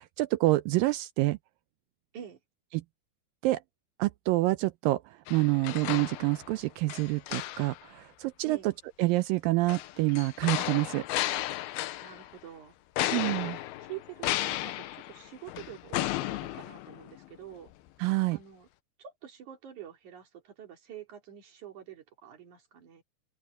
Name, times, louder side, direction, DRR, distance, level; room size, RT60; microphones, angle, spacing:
voice 1, 0.0-1.4 2.7-2.8 3.4-3.6 4.0-8.6 9.0-11.1 13.1-13.5 18.0-18.4, right 19 dB, 80° right, 2.1 m, -27 dB
sound 1, 5.3-6.6 6.9-7.9 9.7-12.4 13.0-17.3 17.7-17.8, left 15 dB, 85° left, 2.8 m, -34 dB
voice 2, 12.0-12.7 13.3-17.7 18.3-18.7 19.0-23.0, right 10 dB, 55° right, 4.1 m, -46 dB
open air
omnidirectional pair, 4.4 m